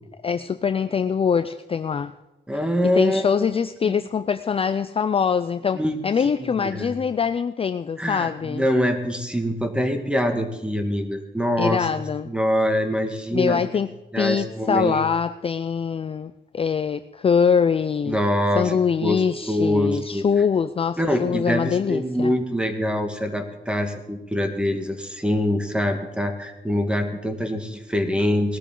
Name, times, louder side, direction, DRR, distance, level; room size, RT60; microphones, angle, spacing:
voice 1, 0.2-2.1 2.8-8.6 11.6-12.3 13.3-13.9 14.2-18.2 18.5-22.3, left 6 dB, 30° left, 11 dB, 0.4 m, -23 dB
voice 2, 2.5-3.4 3.8-4.0 5.7-6.0 6.2-6.9 8.0-11.9 12.3-13.8 14.1-15.0 18.1-18.7 19.0-19.2 19.5-20.3 21.0-28.6, equal, 5° right, 5 dB, 1.7 m, -24 dB
19.5 x 13.0 x 3.8 m, 1.0 s
wide cardioid pair, 135°, 18 cm